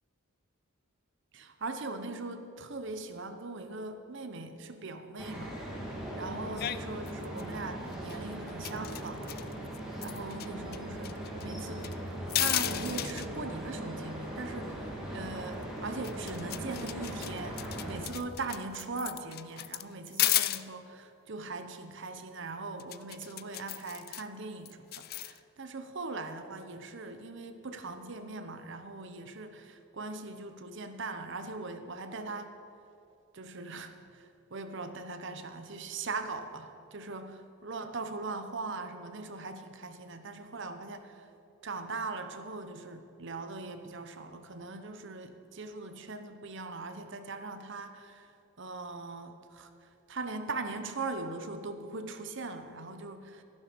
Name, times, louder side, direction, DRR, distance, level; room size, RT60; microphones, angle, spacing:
voice 1, 1.3-5.6 5.9-9.4 10.0-11.9 12.4-32.5 33.3-41.3 41.6-48.3 48.6-49.7 50.1-53.4, right 3 dB, 60° right, 8 dB, 0.9 m, -40 dB
sound 1, 5.2-18.0, right 1 dB, 5° right, 2.5 m, -39 dB
sound 2, 6.6-6.8 7.1-7.5 7.9-8.2 8.5-10.5 10.7-10.8 11.0-11.9 12.3-13.3 15.6-15.7 16.0-20.6 22.8-24.2 24.6-25.4, left 15 dB, 45° left, 0.3 m, -34 dB
13.5 x 11.5 x 5.2 m, 2.6 s
head